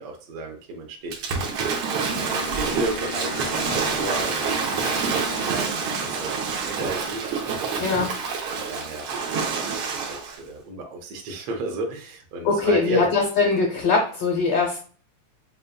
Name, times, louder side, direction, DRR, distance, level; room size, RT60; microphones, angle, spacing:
voice 1, 0.0-1.4 2.0-8.2 8.5-9.4 9.7-13.1, right 1 dB, 70° right, 1 dB, 1.6 m, -33 dB
Waves surf / Splash splatter, 1.1-10.4, right 5 dB, 90° right, 1.1 m, -27 dB
Wind instrument woodwind instrument, 2.2-6.4, left 4 dB, 90° left, 1.2 m, -37 dB
voice 2, 7.8-8.2 12.4-14.8, left 4 dB, 70° left, -1 dB, 1.5 m, -21 dB
6.5 x 2.2 x 2.2 m, 0.40 s
omnidirectional pair, 3.4 m